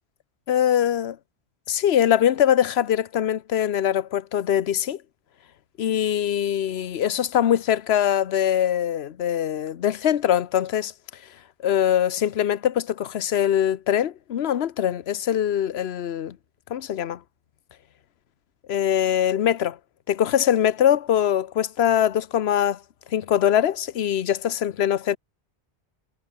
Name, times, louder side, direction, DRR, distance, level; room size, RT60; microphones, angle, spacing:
voice 1, 0.5-1.2 1.7-5.0 5.8-10.9 11.6-16.4 16.7-17.2 18.7-19.8 20.1-22.8 23.1-25.2, left 10 dB, 70° left, 1.1 m, -22 dB
omnidirectional pair, 1.1 m